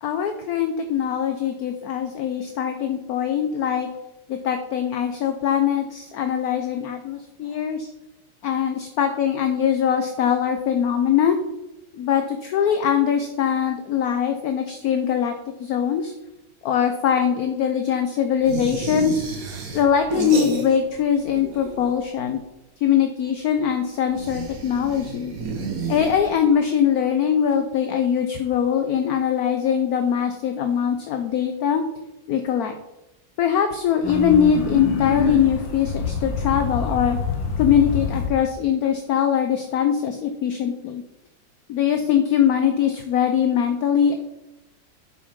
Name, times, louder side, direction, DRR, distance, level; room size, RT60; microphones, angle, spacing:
voice 1, 0.0-3.9 4.3-7.9 8.4-11.4 11.9-15.3 15.6-16.1 16.6-19.2 19.7-22.4 22.8-25.3 25.9-31.8 32.3-32.7 33.4-37.2 37.6-41.0 41.7-44.1, left 8 dB, 65° left, 7 dB, 1.0 m, -22 dB
sound 1, 18.4-21.0 21.3-22.1 24.1-26.6, right 4 dB, 50° right, 1.7 m, -31 dB
sound 2, 34.0-38.3, left 4 dB, 85° left, 1.9 m, -26 dB
7.2 x 7.1 x 5.2 m, 0.95 s
omnidirectional pair, 2.0 m